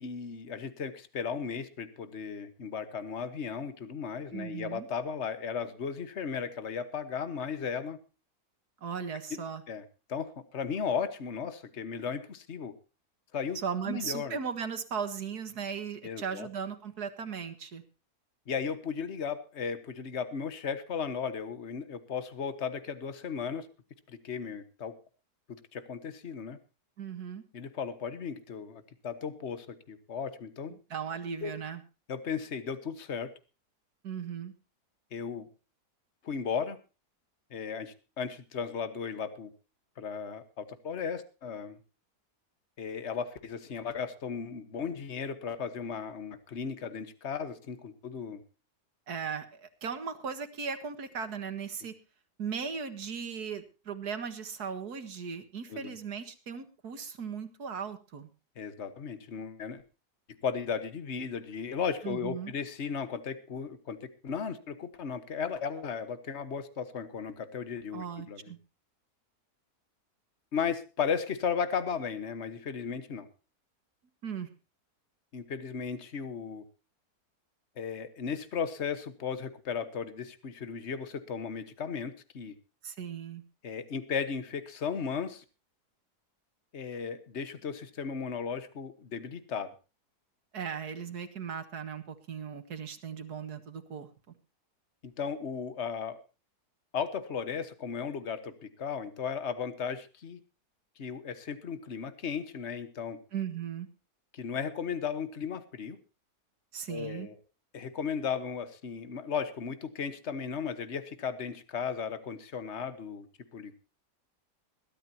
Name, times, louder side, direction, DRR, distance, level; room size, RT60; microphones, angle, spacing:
voice 1, 0.0-8.0 9.3-9.4 9.7-9.8 10.1-12.7 13.3-13.6 13.9-14.4 16.0-16.5 18.5-23.7 24.1-24.9 25.5-26.6 27.5-30.8 31.4-31.5 32.1-33.3 35.1-35.5 36.2-36.8 37.5-39.5 40.0-41.8 42.8-48.4 55.7-56.0 58.6-59.8 60.4-68.5 70.5-73.3 75.3-76.6 77.8-82.5 83.6-85.4 86.7-89.7 95.0-96.2 96.9-100.4 101.0-103.2 104.3-106.0 106.9-107.4 107.7-113.3 113.5-113.7, left 6 dB, 45° left, 12 dB, 1.6 m, -35 dB
voice 2, 4.3-4.9 8.8-9.6 13.6-17.8 27.0-27.4 30.9-31.8 34.0-34.5 49.1-52.0 52.4-58.3 62.0-62.5 67.9-68.6 74.2-74.5 82.8-83.4 90.5-94.1 103.3-103.9 106.7-107.3, right 6 dB, 75° right, 9 dB, 2.2 m, -37 dB
21.5 x 13.0 x 2.9 m, 0.31 s
omnidirectional pair, 1.7 m